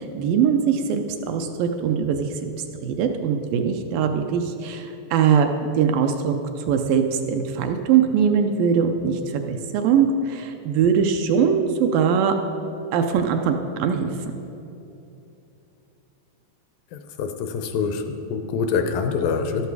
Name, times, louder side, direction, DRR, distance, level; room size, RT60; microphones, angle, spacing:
voice 1, 0.0-2.5 2.8-5.5 5.8-9.2 9.5-12.4 12.9-14.1, right 7 dB, 80° right, 5 dB, 2.2 m, -21 dB
voice 2, 16.9-19.7, left 5 dB, 80° left, 7 dB, 2.3 m, -25 dB
12.5 x 11.5 x 4.7 m, 2.9 s
omnidirectional pair, 4.3 m